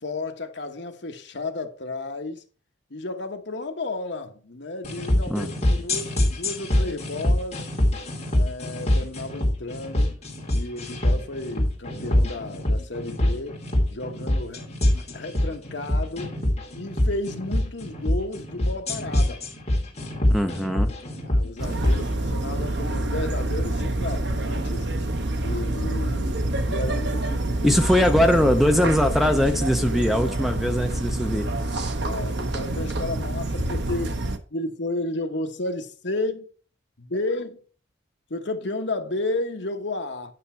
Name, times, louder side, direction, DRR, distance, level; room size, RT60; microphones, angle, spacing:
voice 1, 0.0-2.4 2.9-7.6 8.3-10.2 10.5-13.6 13.9-14.7 15.1-16.3 16.7-19.4 21.2-24.9 25.4-27.8 31.3-34.2 34.5-36.5 37.0-37.6 38.3-40.3, left 2 dB, 60° left, 1.1 m, -32 dB
sound 1, 4.8-22.0, left 1 dB, 30° left, 2.4 m, -24 dB
voice 2, 5.3-5.7 20.3-20.9 27.6-31.5, left 1 dB, ahead, 0.6 m, -21 dB
sound 2, 21.6-34.4, right 1 dB, 60° right, 0.9 m, -27 dB
9.8 x 5.8 x 4.4 m
head